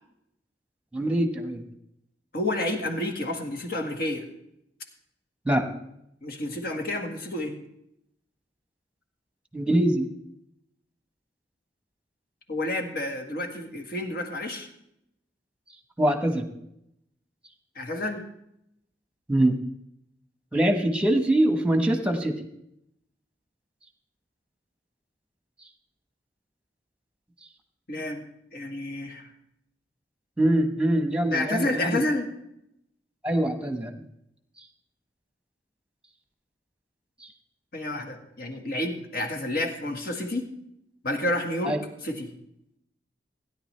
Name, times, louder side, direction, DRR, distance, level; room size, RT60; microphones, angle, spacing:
voice 1, 0.9-1.6 5.4-5.7 9.5-10.1 16.0-16.5 19.3-19.6 20.5-22.5 30.4-32.0 33.2-34.0 41.7-41.8, right 1 dB, 5° right, 6 dB, 1.1 m, -23 dB
voice 2, 2.3-4.3 6.2-7.6 12.5-14.7 17.7-18.2 27.9-28.2 28.5-29.3 31.3-32.3 37.7-40.5 41.0-41.7 42.0-42.3, left 1 dB, 60° left, 4 dB, 1.7 m, -30 dB
16.5 x 10.0 x 3.3 m, 0.78 s
head